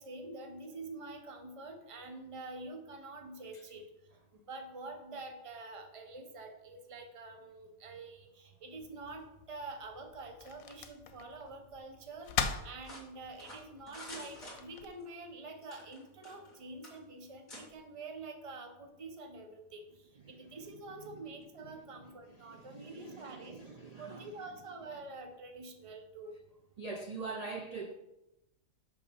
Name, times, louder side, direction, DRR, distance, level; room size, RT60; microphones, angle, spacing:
voice 1, 0.0-3.8 4.5-23.6 24.0-26.3, right 3 dB, 25° right, 0.9 m, -47 dB
sound 1, 8.8-14.9, left 7 dB, 85° left, 1.1 m, -42 dB
sound 2, 12.8-15.1 15.6-16.6 16.8-17.0 17.5-17.7, left 1 dB, 30° left, 2.3 m, -49 dB
voice 2, 22.4-24.3 26.8-27.9, right 4 dB, 85° right, 0.3 m, -43 dB
6.1 x 5.4 x 6.1 m
omnidirectional pair, 1.4 m